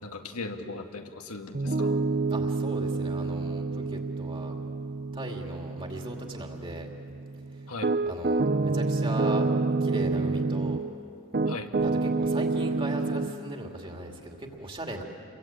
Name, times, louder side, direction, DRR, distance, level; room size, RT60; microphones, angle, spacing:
voice 1, 0.0-2.0 7.7-7.9 11.5-11.7, left 3 dB, 85° left, 4 dB, 2.0 m, -38 dB
Piano, 1.5-10.9 11.3-13.3, right 3 dB, 45° right, 0.6 m, -28 dB
voice 2, 2.3-4.6 5.1-6.9 8.1-10.8 11.8-15.0, right 1 dB, 25° right, 2 dB, 2.5 m, -38 dB
29.5 x 22.5 x 8.8 m, 2.6 s
head